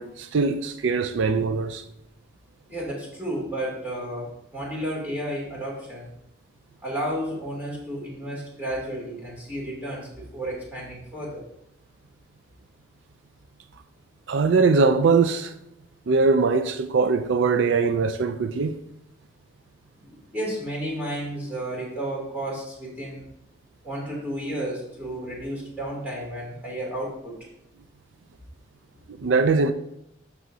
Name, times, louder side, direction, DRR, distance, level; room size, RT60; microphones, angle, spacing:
voice 1, 0.0-1.8 14.3-15.5 16.1-18.8 29.2-29.7, right 4 dB, 80° right, 0.4 m, -21 dB
voice 2, 2.7-6.1 6.8-11.4 20.0-23.3 23.8-27.3, right 1 dB, 10° right, 2.7 m, -32 dB
12.0 x 5.7 x 2.7 m
head